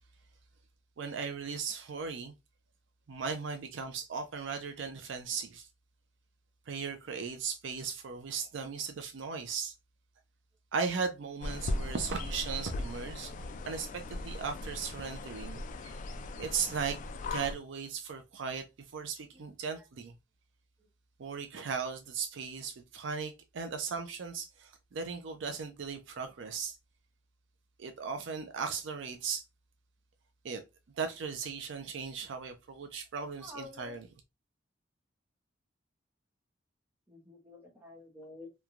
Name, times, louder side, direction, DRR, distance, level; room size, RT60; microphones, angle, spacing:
voice 1, 1.0-2.3 3.1-5.7 6.7-9.7 10.7-13.3 13.7-16.0 16.4-17.0 17.3-18.6 18.9-20.2 21.2-26.8 27.8-29.4 30.4-30.6 30.9-34.1, right 5 dB, 65° right, 0.5 m, -37 dB
sound 1, 11.4-17.5, left 2 dB, 40° left, 0.3 m, -38 dB
voice 2, 33.4-34.0 37.1-38.5, left 2 dB, 10° right, 0.8 m, -50 dB
3.0 x 2.2 x 2.4 m
head